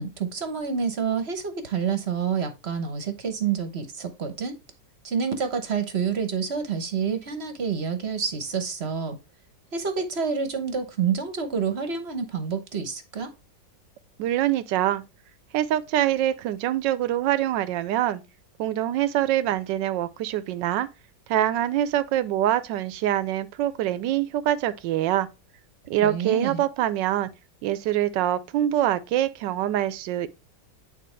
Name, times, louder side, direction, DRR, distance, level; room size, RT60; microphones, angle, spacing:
voice 1, 0.0-4.6 5.0-9.2 9.7-13.3 26.0-26.6, right 6 dB, 45° right, 1.0 m, -28 dB
voice 2, 14.2-15.0 15.5-18.2 18.6-20.9 21.3-25.3 25.9-27.3 27.6-30.3, right 12 dB, 85° right, 1.3 m, -24 dB
9.3 x 4.3 x 3.2 m
omnidirectional pair, 1.9 m